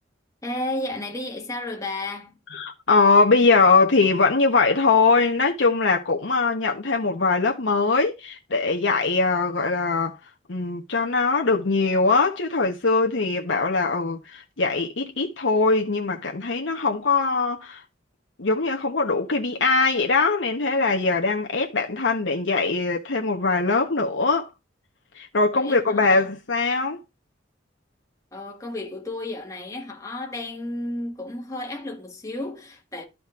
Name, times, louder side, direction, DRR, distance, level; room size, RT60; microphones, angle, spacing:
voice 1, 0.4-2.4 25.5-26.3 28.3-33.1, left 1 dB, 15° left, 1.5 m, -32 dB
voice 2, 2.5-10.2 10.5-17.8 18.4-24.5 25.2-27.0, left 3 dB, 75° left, 1.0 m, -21 dB
12.5 x 5.0 x 2.4 m
head